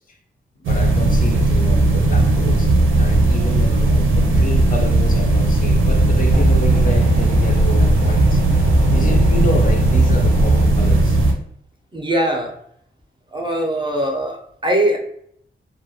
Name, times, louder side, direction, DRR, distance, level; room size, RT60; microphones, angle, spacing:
voice 1, 0.6-8.6 8.9-11.2, left 2 dB, 45° left, 0.4 m, -29 dB
sound 1, 0.6-11.3, right 2 dB, 90° right, 0.5 m, -16 dB
sound 2, 6.3-10.7, equal, 85° left, 1.0 m, -23 dB
voice 2, 11.9-12.5 13.3-15.0, right 1 dB, 25° right, 0.4 m, -21 dB
2.2 x 2.0 x 2.7 m
wide cardioid pair, 105°, 20 cm